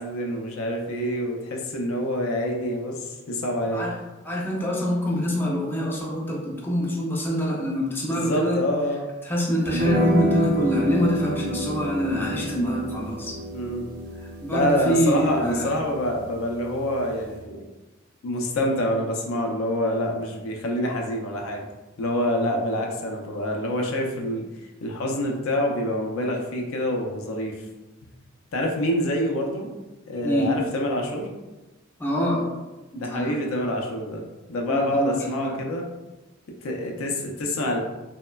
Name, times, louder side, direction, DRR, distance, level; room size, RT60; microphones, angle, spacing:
voice 1, 0.0-3.8 8.0-9.1 13.5-13.9 14.5-17.7 18.2-21.7 22.0-24.5 24.8-27.6 28.5-29.7 30.1-31.3 33.0-34.2 34.5-35.9 36.6-37.8, left 1 dB, 70° left, 1 dB, 0.4 m, -26 dB
voice 2, 4.2-8.6 9.2-13.4 14.2-15.7 30.2-30.6 32.0-32.5 32.9-33.4 34.7-35.6, equal, 10° left, -4 dB, 0.4 m, -25 dB
sound 1, 9.7-17.4, right 1 dB, 50° right, 0.5 m, -29 dB
3.0 x 2.1 x 2.2 m, 1.1 s
head